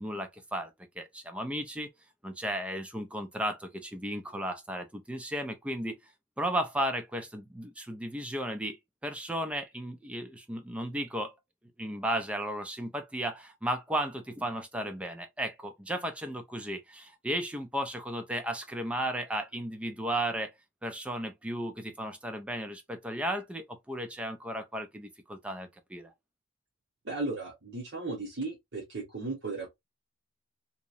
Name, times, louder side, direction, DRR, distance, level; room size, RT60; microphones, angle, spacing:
voice 1, 0.0-1.9 2.2-6.0 6.4-8.8 9.0-11.3 11.8-20.5 20.8-26.1, right 1 dB, 5° right, 0.3 m, -34 dB
voice 2, 27.0-29.8, right 3 dB, 60° right, 0.7 m, -36 dB
2.8 x 2.0 x 2.4 m
head